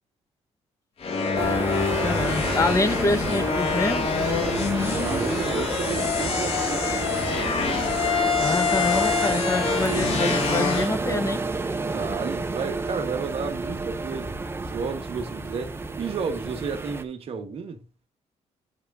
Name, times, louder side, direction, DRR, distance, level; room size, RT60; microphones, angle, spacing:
sound 1, 1.0-10.9, left 5 dB, 55° left, 2.2 m, -26 dB
sound 2, 1.4-17.0, right 3 dB, 20° right, 0.9 m, -30 dB
voice 1, 2.0-4.1 8.4-11.4, left 2 dB, 25° left, 1.0 m, -26 dB
voice 2, 4.9-7.2 11.9-17.8, right 5 dB, 55° right, 1.4 m, -32 dB
8.3 x 3.6 x 5.5 m
cardioid pair, 120°, 12 cm